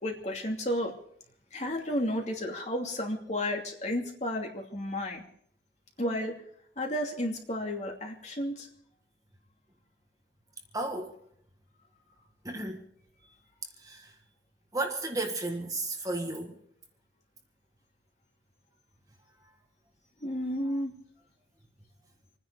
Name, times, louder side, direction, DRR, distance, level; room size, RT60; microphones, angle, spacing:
voice 1, 0.0-0.9 1.5-5.2 6.0-6.4 6.8-8.7 20.2-20.9, left 1 dB, 40° left, 1 dB, 2.7 m, -32 dB
voice 2, 10.7-11.1 12.4-12.8 13.8-14.2 14.7-16.5, right 2 dB, 20° right, 3 dB, 1.6 m, -33 dB
27.0 x 10.0 x 5.1 m, 0.66 s
head